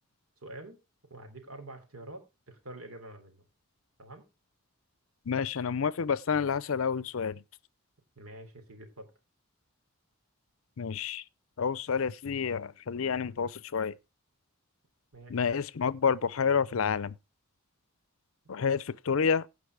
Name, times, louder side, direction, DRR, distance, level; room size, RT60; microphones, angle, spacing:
voice 1, 0.4-0.8 1.1-3.4 4.0-4.2 8.1-9.1 15.1-15.4 18.4-18.5, right 1 dB, 80° right, 3.2 m, -47 dB
voice 2, 5.3-7.4 10.8-11.2 11.6-13.9 15.3-17.2 18.5-19.4, left 6 dB, 70° left, 0.5 m, -29 dB
16.0 x 5.4 x 4.7 m
head